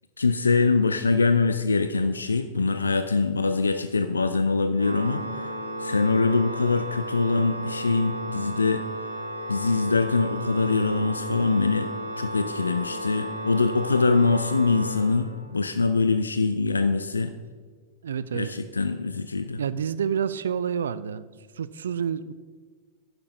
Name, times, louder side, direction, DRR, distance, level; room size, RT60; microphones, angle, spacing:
voice 1, 0.2-8.8 9.5-11.9 12.2-17.3 18.3-19.6, left 4 dB, 75° left, 10 dB, 0.4 m, -23 dB
Organ, 4.8-15.7, right 1 dB, 80° right, 1.0 m, -34 dB
voice 2, 18.0-18.5 19.6-21.3 21.5-22.3, right 7 dB, 65° right, 16 dB, 0.3 m, -28 dB
10.5 x 6.7 x 5.3 m, 1.5 s
figure-of-eight pair, 90°, 0 cm